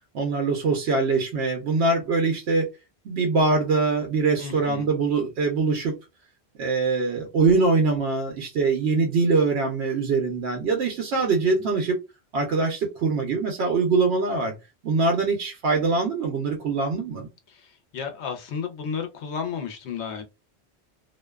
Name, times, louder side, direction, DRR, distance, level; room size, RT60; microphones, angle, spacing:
voice 1, 0.1-2.7 3.0-5.9 6.6-11.9 12.3-14.5 14.8-17.3, right 4 dB, 85° right, 0.9 m, -23 dB
voice 2, 4.4-4.9 17.5-20.2, left 6 dB, 90° left, 1.0 m, -33 dB
2.6 x 2.1 x 2.2 m
omnidirectional pair, 1.1 m